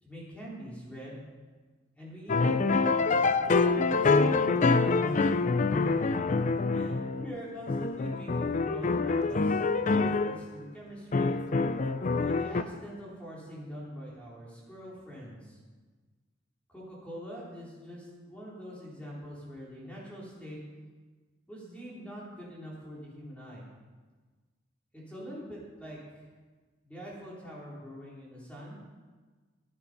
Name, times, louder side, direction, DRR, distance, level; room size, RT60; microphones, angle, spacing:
voice 1, 0.0-1.2 2.0-3.4 3.8-5.5 6.0-6.4 6.7-9.6 9.9-11.3 12.1-15.6 16.7-20.6 21.5-23.6 24.9-26.2 26.8-28.8, equal, 5° left, -6 dB, 3.8 m, -44 dB
sound 1, 2.3-7.4 7.7-10.4 11.1-12.6, left 4 dB, 40° left, 0.5 m, -26 dB
14.0 x 9.5 x 5.3 m, 1.4 s
head